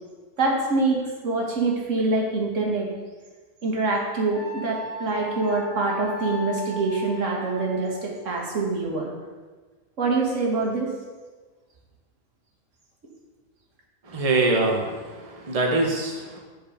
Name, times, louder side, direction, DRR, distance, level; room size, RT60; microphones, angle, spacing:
voice 1, 0.4-2.9 3.6-9.1 10.0-10.9, right 3 dB, 55° right, -2 dB, 1.9 m, -25 dB
Wind instrument woodwind instrument, 4.3-8.1, left 1 dB, 40° left, 1.3 m, -37 dB
voice 2, 14.1-16.4, right 2 dB, 25° right, 1 dB, 1.1 m, -24 dB
10.5 x 4.7 x 5.0 m, 1.3 s
omnidirectional pair, 1.6 m